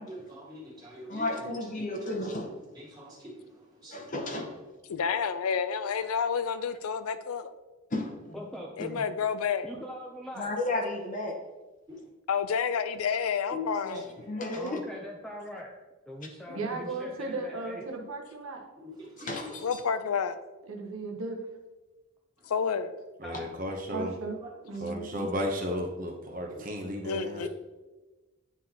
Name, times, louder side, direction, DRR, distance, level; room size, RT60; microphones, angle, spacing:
voice 1, 0.1-1.6 2.1-2.2 2.8-3.4 3.8-4.0 11.9-12.0 13.5-13.6 18.8-19.5 24.9-25.3 26.5-26.6, left 3 dB, 20° right, 1.9 m, -43 dB
voice 2, 1.1-2.6 3.9-4.5 7.9-8.4 10.4-11.4 13.8-14.8 16.5-16.6 19.2-19.8, left 2 dB, 35° left, 0.8 m, -33 dB
voice 3, 4.9-7.5 8.8-9.7 12.3-14.0 19.6-20.4 22.5-22.9 27.0-27.5, left 6 dB, 85° left, 0.4 m, -29 dB
voice 4, 8.3-9.1 9.6-10.5 14.5-15.8 16.1-17.8 23.2-23.5 27.4-27.5, equal, ahead, 0.4 m, -41 dB
voice 5, 16.5-18.6 20.6-21.4 23.9-24.4 24.6-25.3, right 3 dB, 75° right, 1.0 m, -36 dB
voice 6, 23.2-24.1 24.8-27.5, equal, 40° right, 0.8 m, -34 dB
9.4 x 3.9 x 2.8 m
head